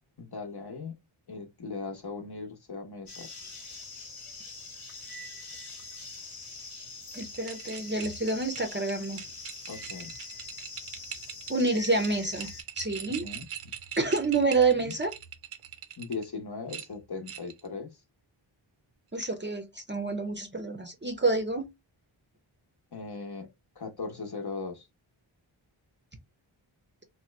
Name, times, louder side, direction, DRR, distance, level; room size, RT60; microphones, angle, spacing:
voice 1, 0.2-1.0 1.3-3.3 9.7-10.2 13.0-13.5 14.7-14.9 16.0-18.0 22.9-23.5 23.8-24.9, left 4 dB, 50° left, 0.8 m, -38 dB
sound 1, 3.1-12.6, left 3 dB, 85° left, 1.2 m, -44 dB
voice 2, 7.1-9.2 11.5-13.2 14.0-15.1 19.1-21.7, right 3 dB, 25° right, 0.5 m, -28 dB
sound 2, 7.1-16.3 16.7-17.7, right 9 dB, 85° right, 0.7 m, -42 dB
2.9 x 2.2 x 3.1 m
wide cardioid pair, 80°, 49 cm